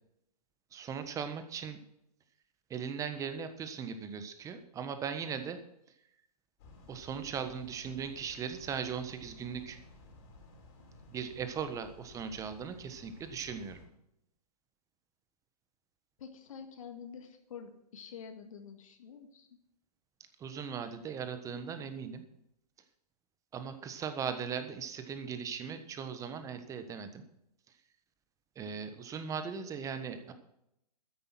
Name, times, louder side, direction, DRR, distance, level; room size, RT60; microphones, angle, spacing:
voice 1, 0.7-1.8 2.7-5.6 6.9-9.8 11.1-13.8 20.4-22.2 23.5-27.2 28.5-30.3, right 7 dB, 15° right, 9 dB, 1.3 m, -38 dB
sound 1, 6.6-13.9, left 2 dB, 35° left, 4.2 m, -55 dB
voice 2, 16.2-19.5, left 6 dB, 55° left, 6 dB, 1.9 m, -48 dB
13.0 x 10.5 x 5.9 m, 0.80 s
figure-of-eight pair, 125°, 21 cm